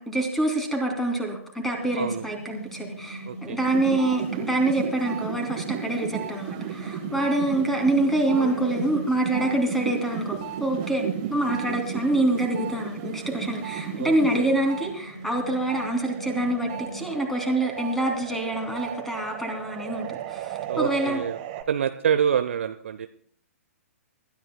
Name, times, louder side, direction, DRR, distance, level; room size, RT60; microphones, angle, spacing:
voice 1, 0.0-11.0 11.3-21.2, right 1 dB, 5° left, 3 dB, 2.8 m, -26 dB
sound 1, 1.7-17.2, right 1 dB, 85° left, 4.3 m, -42 dB
voice 2, 1.9-2.2 3.3-3.6 14.0-14.5 20.7-21.4 21.7-23.1, right 8 dB, 55° right, 10 dB, 0.6 m, -26 dB
sound 2, 3.6-14.9 15.3-21.6, right 9 dB, 35° right, 1.5 m, -35 dB
25.0 x 13.0 x 2.2 m, 0.62 s
figure-of-eight pair, 115°, 8 cm